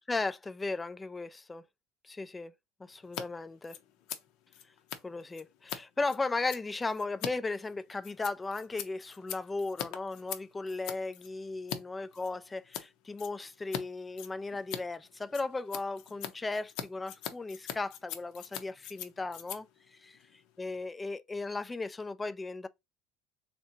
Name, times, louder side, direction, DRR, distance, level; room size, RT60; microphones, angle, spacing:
voice 1, 0.1-1.6 2.0-2.5 2.8-3.8 5.0-19.7 20.0-20.1 20.6-22.7, left 3 dB, 10° left, 0.3 m, -36 dB
Scissors, 3.0-3.2 3.5-11.8 12.1-12.9 13.2-13.8 14.1-20.9, left 10 dB, 60° left, 0.6 m, -42 dB
3.4 x 2.7 x 4.1 m
cardioid pair, 150°, 0 cm